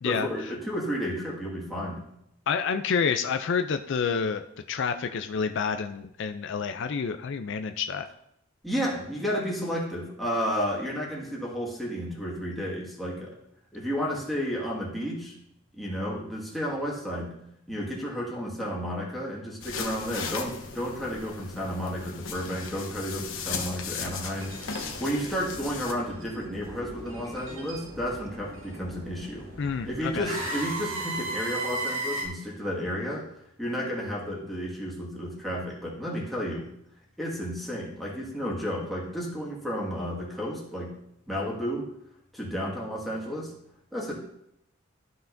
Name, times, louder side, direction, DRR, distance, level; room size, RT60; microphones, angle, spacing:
voice 1, 0.0-2.0 8.6-13.4 13.7-15.3 15.8-17.3 17.7-29.5 29.8-33.3 33.6-36.7 37.2-40.9 41.3-41.9 42.3-43.5 43.9-44.1, equal, ahead, -5 dB, 1.8 m, -32 dB
voice 2, 2.5-8.1 29.6-30.3, left 6 dB, 65° left, 7 dB, 0.4 m, -28 dB
sound 1, 19.6-25.9, left 5 dB, 80° left, 1.0 m, -37 dB
sound 2, 24.3-32.3, right 2 dB, 75° right, 1.8 m, -37 dB
12.5 x 5.7 x 2.6 m, 0.78 s
head